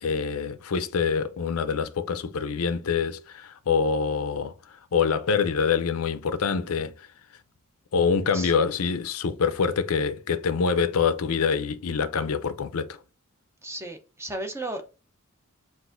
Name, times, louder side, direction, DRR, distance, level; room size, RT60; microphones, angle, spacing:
voice 1, 0.0-4.5 4.9-6.9 7.9-13.0, left 5 dB, 75° left, 0.5 m, -25 dB
voice 2, 13.6-14.9, right 1 dB, 10° right, 0.7 m, -34 dB
5.9 x 2.5 x 2.5 m
head